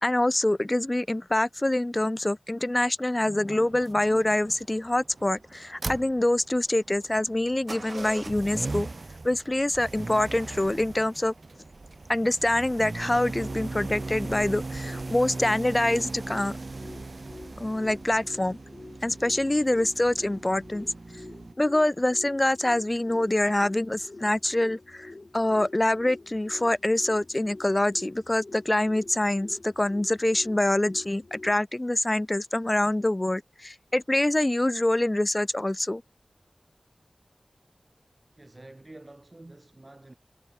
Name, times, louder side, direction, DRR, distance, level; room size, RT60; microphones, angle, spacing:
voice 1, 0.0-8.9 9.2-11.3 12.1-16.5 17.6-18.6 19.0-20.9 21.6-36.0, left 1 dB, 25° left, 0.5 m, -25 dB
sound 1, 3.7-21.5, right 3 dB, 55° right, 1.1 m, -39 dB
sound 2, 13.1-31.5, left 2 dB, 45° left, 2.5 m, -47 dB
voice 2, 38.4-40.1, right 2 dB, 30° right, 5.2 m, -48 dB
wide cardioid pair, 70°, 0 cm